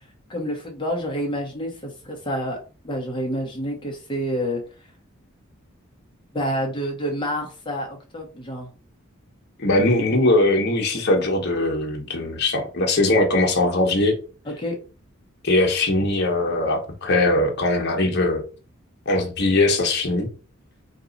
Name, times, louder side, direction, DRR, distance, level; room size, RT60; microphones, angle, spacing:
voice 1, 0.3-2.6 2.8-4.6 6.3-8.7 14.5-14.8, equal, 25° left, 1.1 m, -28 dB
voice 2, 9.6-14.2 15.4-18.4 19.1-20.3, left 2 dB, 55° left, 1.1 m, -20 dB
4.6 x 2.9 x 3.9 m
head